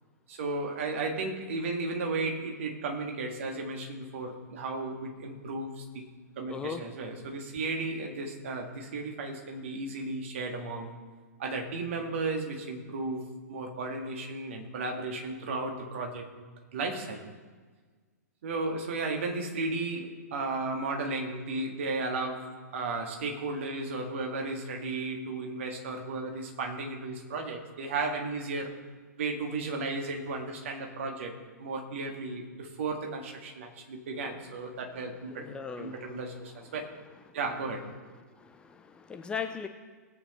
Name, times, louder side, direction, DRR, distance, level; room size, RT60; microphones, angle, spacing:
voice 1, 0.3-6.1 6.4-10.9 11.4-16.3 16.7-17.2 18.4-28.7 29.2-35.5 35.8-36.9 37.3-37.9, right 3 dB, 50° right, 2 dB, 1.9 m, -34 dB
voice 2, 6.5-6.8 35.3-36.0 37.3-37.4 38.4-39.7, left 6 dB, 10° left, 6 dB, 0.5 m, -38 dB
19.0 x 8.8 x 3.2 m, 1.5 s
figure-of-eight pair, 115°, 9 cm